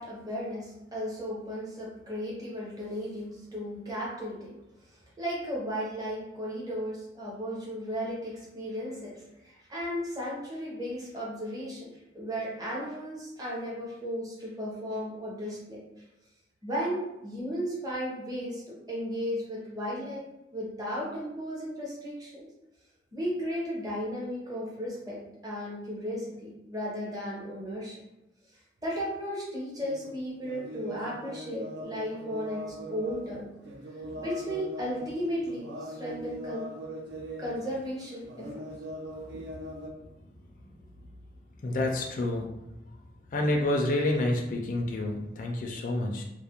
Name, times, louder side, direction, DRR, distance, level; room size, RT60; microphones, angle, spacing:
voice 1, 0.0-4.6 5.2-9.1 9.4-11.9 12.1-15.8 16.6-20.2 20.5-22.5 23.1-28.0 28.8-33.5 34.1-36.6 37.4-38.6, equal, 20° right, -5 dB, 0.6 m, -35 dB
sound 1, 29.8-30.2 30.4-33.4 33.6-37.7 38.0-39.9, equal, 70° right, 0.4 m, -41 dB
voice 2, 41.6-42.5 43.3-46.2, left 1 dB, 45° left, 1 dB, 0.3 m, -28 dB
2.3 x 2.0 x 2.9 m, 0.93 s
head